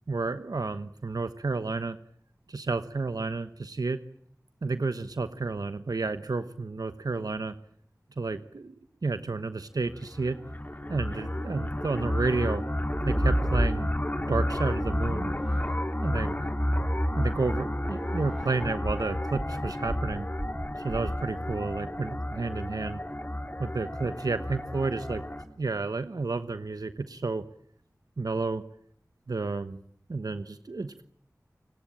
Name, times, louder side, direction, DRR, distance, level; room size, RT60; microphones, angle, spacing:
voice 1, 0.1-2.0 2.5-4.0 4.6-7.5 8.2-8.7 9.0-10.4 10.9-12.6 13.0-13.9 14.3-15.6 16.0-16.4 17.2-20.3 20.8-23.0 23.6-25.2 25.6-27.5 28.2-28.6 29.3-29.8 30.1-31.0, right 3 dB, 90° right, 11 dB, 1.1 m, -31 dB
sound 1, 9.9-25.4, left 1 dB, 30° left, 3.3 m, -32 dB
sound 2, 12.7-14.1 14.6-21.6, right 1 dB, 15° right, 4.9 m, -33 dB
29.5 x 18.5 x 8.6 m, 0.65 s
wide cardioid pair, 40°, 6 cm